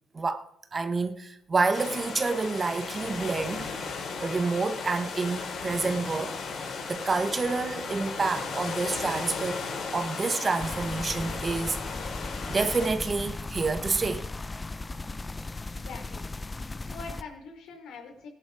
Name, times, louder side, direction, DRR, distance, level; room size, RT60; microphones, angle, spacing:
voice 1, 0.1-0.5 0.7-3.7 4.2-9.6 9.9-11.8 12.5-14.3, right 3 dB, 35° right, 1.3 m, -28 dB
sound 1, 1.7-12.9, left 4 dB, 60° left, 4.9 m, -36 dB
sound 2, 10.6-17.2, left 3 dB, 25° left, 0.7 m, -37 dB
voice 2, 15.7-16.2 16.8-18.3, left 4 dB, 80° left, 4.2 m, -43 dB
17.5 x 10.5 x 5.0 m
cardioid pair, 90°, 0 cm